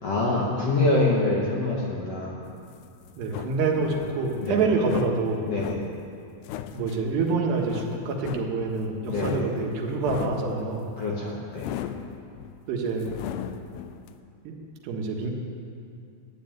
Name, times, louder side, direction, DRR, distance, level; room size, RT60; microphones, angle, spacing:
voice 1, 0.0-2.3 4.4-4.6 5.5-5.8 9.1-9.5 11.0-11.7, left 2 dB, 50° left, -4 dB, 2.2 m, -25 dB
sound 1, 2.4-14.1, left 10 dB, 85° left, 2.6 m, -38 dB
voice 2, 3.2-5.5 6.7-10.9 12.7-13.1 14.5-14.6 14.8-15.3, right 4 dB, 85° right, 0 dB, 3.6 m, -26 dB
12.5 x 10.5 x 9.1 m, 2.4 s
omnidirectional pair, 4.7 m